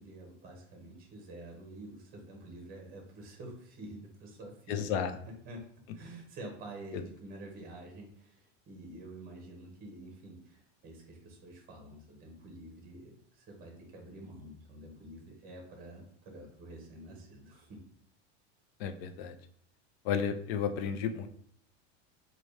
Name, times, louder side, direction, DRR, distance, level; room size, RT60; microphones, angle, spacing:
voice 1, 0.0-4.9 5.2-5.6 5.9-17.8, right 1 dB, 25° right, 1 dB, 1.0 m, -48 dB
voice 2, 4.7-5.1 6.9-7.0 18.8-19.4 20.0-21.3, left 7 dB, 60° left, 9 dB, 0.5 m, -32 dB
4.0 x 2.4 x 3.2 m, 0.63 s
supercardioid pair, 165°, 36 cm